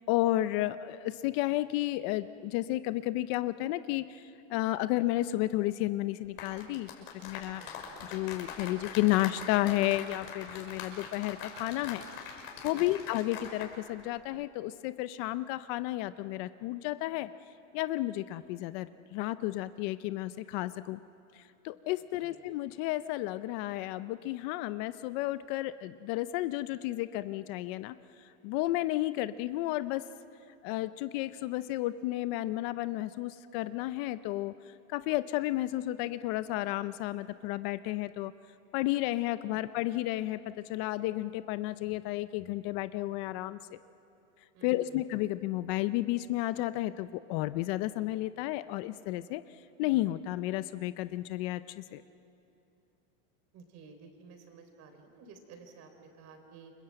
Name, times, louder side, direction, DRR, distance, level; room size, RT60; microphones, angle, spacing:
voice 1, 0.0-4.2 4.5-6.9 7.2-7.6 8.1-12.1 12.6-17.3 17.7-21.0 21.4-27.9 28.4-30.0 30.6-34.5 34.9-38.3 38.7-40.4 40.7-43.8 44.6-49.4 49.8-52.0, left 16 dB, 50° left, 13 dB, 0.7 m, -32 dB
sound 1, 6.2-13.7 14.0-14.2, left 6 dB, 80° left, 5.7 m, -43 dB
voice 2, 7.5-7.8 12.7-13.0 22.2-22.4 39.5-39.6 44.5-45.0 53.5-56.7, right 5 dB, 40° right, 6 dB, 4.2 m, -53 dB
28.5 x 25.0 x 7.9 m, 2.7 s
supercardioid pair, 145°, 40 cm